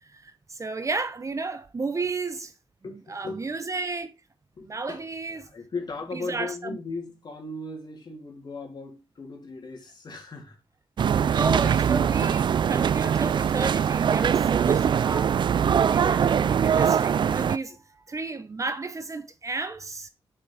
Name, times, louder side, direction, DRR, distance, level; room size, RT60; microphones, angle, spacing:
voice 1, 0.0-2.5 2.9-4.1 4.6-5.5 6.1-6.8 11.3-15.4 15.8-20.1, right 3 dB, 35° right, 0.9 m, -32 dB
voice 2, 2.8-3.5 4.6-10.6 12.2-12.3 14.4-14.6 15.6-16.1 17.7-17.8, left 3 dB, 50° left, 3.3 m, -38 dB
sound 1, 11.0-17.6, right 8 dB, 55° right, 0.4 m, -22 dB
7.1 x 6.5 x 4.8 m
cardioid pair, 100°, 10 cm